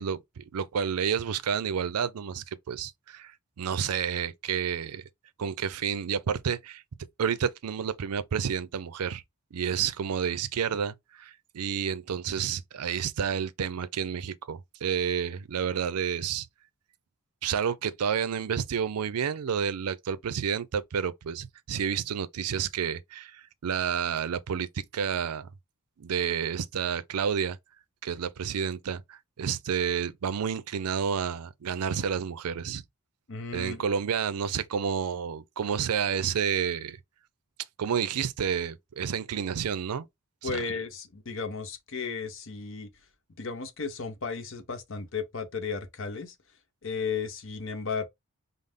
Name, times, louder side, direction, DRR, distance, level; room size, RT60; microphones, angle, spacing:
voice 1, 0.0-5.0 5.4-6.8 7.2-9.2 9.5-16.5 17.4-25.5 26.0-27.6 28.0-32.8 33.5-37.0 37.8-40.1 40.4-40.6, right 7 dB, 90° right, 0.5 m, -30 dB
voice 2, 33.3-33.9 40.4-42.9 43.4-46.3 46.8-48.0, left 5 dB, 60° left, 0.7 m, -34 dB
5.4 x 2.0 x 3.5 m
head